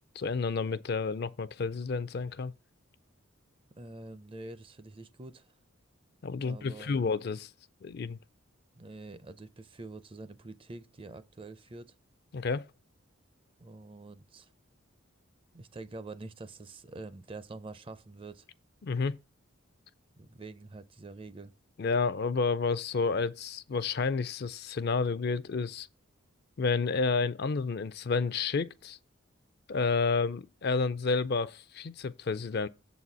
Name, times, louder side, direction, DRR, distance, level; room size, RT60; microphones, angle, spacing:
voice 1, 0.2-2.5 6.2-7.5 7.8-8.2 12.3-12.7 18.8-19.2 21.8-25.9 26.6-29.0 29.7-32.7, left 4 dB, 50° left, 0.4 m, -30 dB
voice 2, 3.8-5.5 6.4-7.0 8.8-11.9 13.6-14.5 15.5-18.5 20.2-21.5, right 2 dB, 25° right, 0.5 m, -46 dB
7.4 x 4.1 x 6.0 m
head